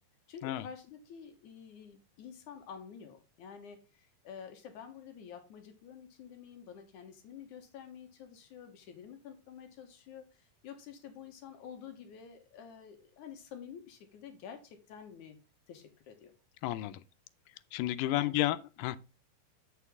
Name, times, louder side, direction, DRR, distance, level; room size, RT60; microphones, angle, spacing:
voice 1, 0.3-15.4 15.7-16.3 18.1-18.5, left 7 dB, 70° left, 2.5 m, -49 dB
voice 2, 16.6-17.0 17.7-19.0, left 15 dB, 90° left, 2.2 m, -31 dB
7.4 x 6.5 x 3.5 m
omnidirectional pair, 3.8 m